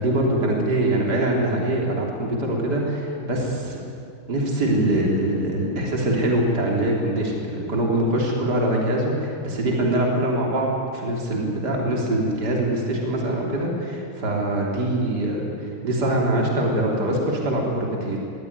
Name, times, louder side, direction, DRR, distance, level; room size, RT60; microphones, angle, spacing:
voice 1, 0.0-3.8 4.3-18.2, right 1 dB, 50° right, -1 dB, 3.9 m, -23 dB
21.5 x 15.5 x 9.8 m, 2.4 s
omnidirectional pair, 2.4 m